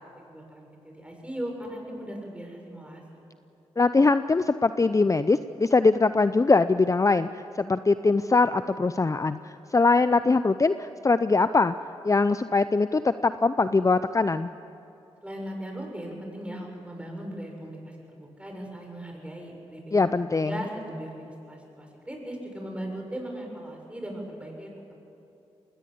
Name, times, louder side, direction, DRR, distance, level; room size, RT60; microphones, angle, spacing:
voice 1, 0.3-3.2 15.2-25.0, right 1 dB, 10° right, 1 dB, 6.9 m, -38 dB
voice 2, 3.8-7.3 7.6-11.7 12.0-14.5 19.9-20.6, left 3 dB, 30° left, 13 dB, 0.6 m, -22 dB
21.5 x 18.0 x 8.6 m, 2.9 s
supercardioid pair, 45°, 12 cm